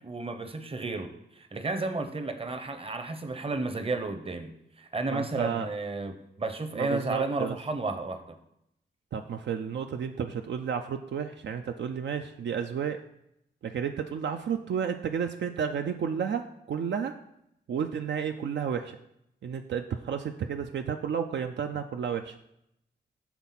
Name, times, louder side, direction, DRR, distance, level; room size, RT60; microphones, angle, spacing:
voice 1, 0.0-4.5 4.8-8.4, right 3 dB, 30° right, 7 dB, 0.7 m, -32 dB
voice 2, 5.1-5.7 6.7-7.6 9.1-13.0 13.6-17.2 17.7-19.0 19.4-22.4, right 7 dB, 70° right, 6 dB, 0.4 m, -32 dB
5.9 x 3.5 x 5.7 m, 0.80 s
cardioid pair, 55°, 19 cm